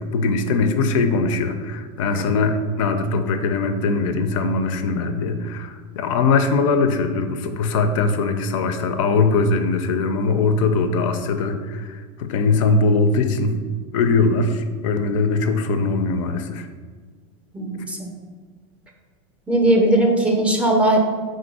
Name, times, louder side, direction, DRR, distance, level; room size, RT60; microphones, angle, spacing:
voice 1, 0.0-13.6 13.9-16.7, left 3 dB, 75° left, 8 dB, 0.4 m, -21 dB
voice 2, 17.5-18.0 19.5-21.0, right 1 dB, 5° right, 1 dB, 0.4 m, -18 dB
3.7 x 2.6 x 4.0 m, 1.5 s
supercardioid pair, 140°, 17 cm